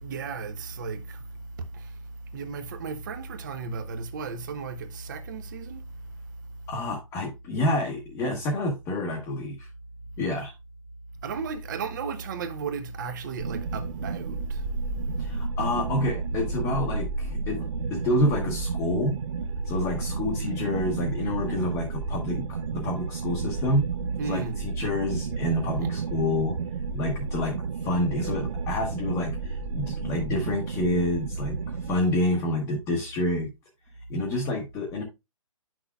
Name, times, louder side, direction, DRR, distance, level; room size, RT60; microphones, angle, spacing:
voice 1, 0.0-2.0 2.3-5.8 11.2-14.7 24.2-24.6, right 5 dB, 35° right, 0.8 m, -34 dB
voice 2, 6.7-9.7 10.2-10.5 15.2-19.2 19.7-23.9 24.3-26.5 26.9-33.5 34.1-35.0, left 1 dB, 15° left, 1.0 m, -28 dB
sound 1, 13.4-32.0, right 4 dB, 70° right, 0.6 m, -31 dB
9.4 x 6.1 x 2.3 m
hypercardioid pair, 160°, 17 cm